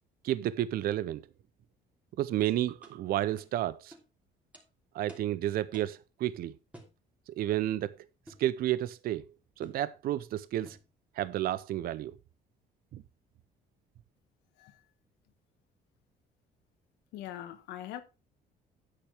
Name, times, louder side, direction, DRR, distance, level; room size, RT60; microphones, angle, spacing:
voice 1, 0.2-1.2 2.2-3.9 4.9-6.6 7.4-7.9 8.4-9.2 9.6-10.8 11.2-12.1 12.9-13.0, right 13 dB, 60° right, 0.5 m, -31 dB
sound 1, 2.4-2.5 2.8-3.0 3.4-3.5 3.9-4.1 4.5-4.7 5.1-5.3 5.7-6.0 6.7-7.0 8.3-8.5 9.6-9.9 10.7-10.9, right 1 dB, 10° right, 2.8 m, -51 dB
voice 2, 17.1-18.0, left 12 dB, 85° left, 1.4 m, -42 dB
10.0 x 8.8 x 3.3 m
cardioid pair, 110°, 17 cm